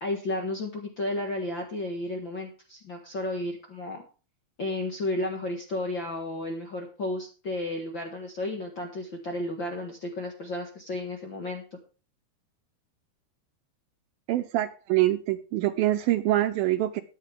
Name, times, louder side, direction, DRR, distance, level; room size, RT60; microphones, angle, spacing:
voice 1, 0.0-4.0 4.6-11.6, left 2 dB, 50° left, 2 dB, 1.5 m, -33 dB
voice 2, 14.3-17.0, right 14 dB, 80° right, 9 dB, 2.2 m, -25 dB
14.0 x 10.0 x 3.5 m, 0.34 s
omnidirectional pair, 4.6 m